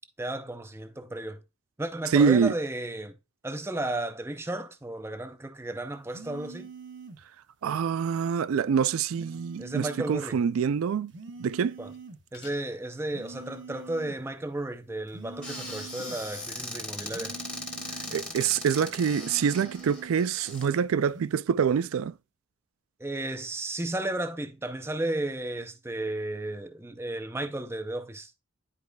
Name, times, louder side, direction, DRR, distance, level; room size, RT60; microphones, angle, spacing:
voice 1, 0.2-1.4 1.8-3.2 3.4-6.7 9.6-10.4 11.8-11.9 12.3-17.3 23.0-28.3, right 1 dB, 10° right, 0.5 m, -33 dB
voice 2, 2.1-2.5 7.6-11.1 11.4-11.8 18.1-22.1, right 7 dB, 90° right, 0.3 m, -25 dB
sound 1, 6.1-7.3 9.1-10.3 11.1-12.3 13.1-14.3 15.1-16.3 17.1-18.3 19.1-20.3 21.1-21.4, right 4 dB, 60° right, 0.9 m, -45 dB
sound 2, 11.7-12.1 12.3-12.7 14.9-15.0 16.0-16.3, left 4 dB, 55° left, 1.6 m, -52 dB
Squeak / Cupboard open or close, 15.4-20.7, left 1 dB, 5° left, 1.6 m, -39 dB
10.5 x 4.8 x 2.2 m
head